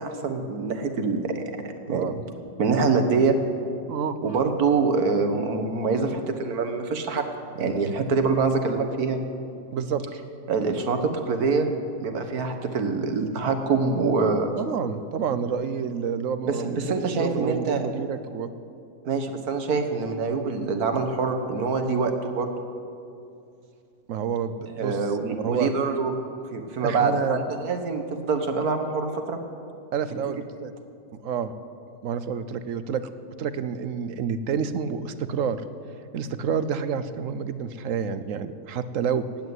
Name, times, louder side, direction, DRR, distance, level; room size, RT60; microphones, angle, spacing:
voice 1, 0.0-1.3 1.6-2.1 2.6-3.4 4.2-7.3 7.6-9.2 10.5-11.7 12.0-14.5 16.5-17.8 19.1-22.5 24.8-26.1 26.5-29.4, right 4 dB, 90° right, 6 dB, 1.8 m, -25 dB
voice 2, 1.9-2.2 3.9-4.2 9.7-10.0 14.6-16.9 17.2-18.5 24.1-25.0 25.4-25.7 26.8-27.4 29.9-30.7 31.2-31.5 32.0-33.1 33.4-35.6 36.1-39.3, right 7 dB, 65° right, 12 dB, 1.1 m, -28 dB
15.5 x 9.0 x 9.5 m, 2.5 s
omnidirectional pair, 1.5 m